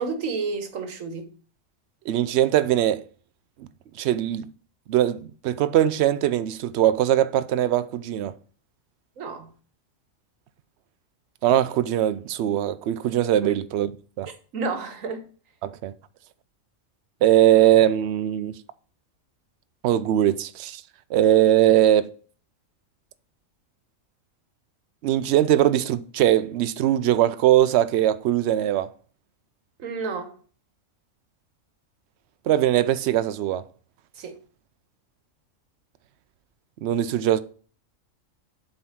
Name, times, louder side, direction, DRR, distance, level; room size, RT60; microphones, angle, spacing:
voice 1, 0.0-1.3 9.2-9.5 13.4-13.5 14.5-15.2 29.8-30.3 34.2-34.3, right 4 dB, 85° right, 1.5 m, -30 dB
voice 2, 2.1-3.0 4.0-4.5 4.9-8.3 11.4-13.9 14.2-14.3 15.6-15.9 17.2-18.5 19.8-20.8 21.1-22.1 25.0-28.9 32.5-33.6 36.8-37.4, right 12 dB, 65° right, 0.7 m, -21 dB
7.7 x 3.9 x 5.8 m
omnidirectional pair, 1.3 m